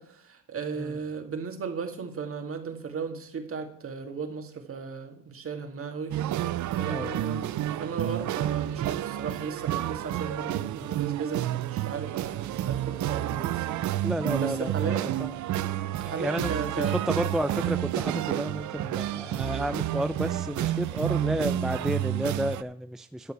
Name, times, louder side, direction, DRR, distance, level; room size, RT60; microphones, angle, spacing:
voice 1, 0.0-7.5 7.8-13.8 14.4-15.1 15.9-17.0, right 5 dB, 45° right, 5 dB, 2.3 m, -36 dB
sound 1, 6.1-22.6, right 13 dB, 75° right, 0.6 m, -30 dB
voice 2, 14.0-14.9 15.2-15.3 16.0-23.3, equal, ahead, 10 dB, 0.5 m, -31 dB
12.0 x 6.9 x 6.8 m, 0.65 s
cardioid pair, 90°, 30 cm